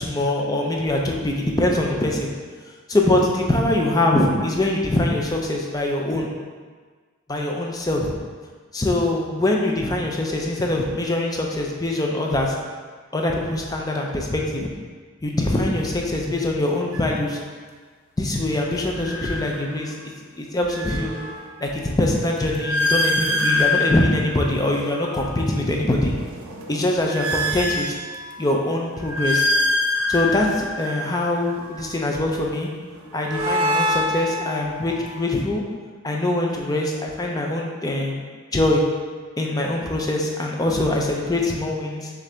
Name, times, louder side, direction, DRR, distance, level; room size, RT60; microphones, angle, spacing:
voice 1, 0.0-2.3 2.9-6.3 7.3-8.1 8.7-12.5 13.1-14.7 15.2-17.4 18.2-19.9 20.3-21.2 21.6-26.1 26.7-27.9 28.4-29.5 30.1-32.7 33.1-35.6 36.0-38.2 38.5-38.9 39.4-42.1, left 1 dB, 20° left, 0 dB, 0.4 m, -23 dB
sound 1, 16.9-17.2 18.9-20.1 20.5-25.3 25.8-28.5 28.9-31.9 32.9-35.2, left 1 dB, 90° right, 0.7 m, -26 dB
6.4 x 2.5 x 3.3 m, 1.5 s
head